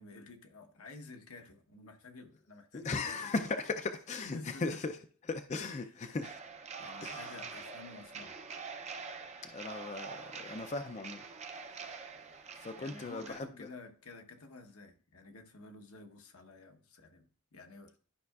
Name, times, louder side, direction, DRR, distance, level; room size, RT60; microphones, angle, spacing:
voice 1, 0.0-3.3 4.3-4.8 6.8-8.4 12.8-17.9, left 3 dB, 80° left, 1.0 m, -51 dB
voice 2, 2.7-5.0 5.2-6.7 7.0-7.5 9.4-11.3 11.8-12.0 12.6-13.7, left 3 dB, 35° left, 0.4 m, -38 dB
sound 1, 6.2-13.4, right 5 dB, 30° right, 0.5 m, -45 dB
12.0 x 5.6 x 2.4 m
head